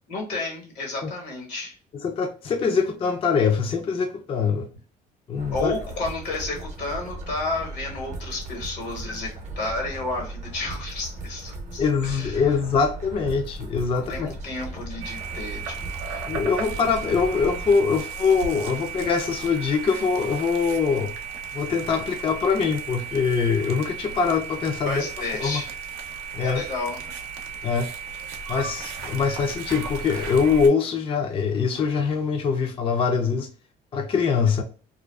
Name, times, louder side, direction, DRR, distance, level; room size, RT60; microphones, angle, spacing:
voice 1, 0.1-1.7 5.5-9.3 9.6-12.4 13.9-15.8 16.0-16.2 24.8-25.7 26.4-27.0, left 2 dB, 85° left, 1.2 m, -31 dB
voice 2, 1.9-4.7 5.3-5.7 11.8-14.3 16.3-21.1 21.5-25.0 25.4-25.6 26.3-26.6 27.6-27.9 28.5-33.5 33.9-34.6, left 5 dB, 35° left, 0.3 m, -23 dB
sound 1, 5.4-17.7, right 2 dB, 45° right, 0.6 m, -37 dB
sound 2, 15.0-30.7, right 6 dB, 90° right, 0.5 m, -35 dB
2.4 x 2.3 x 2.2 m
cardioid pair, 110°, 17 cm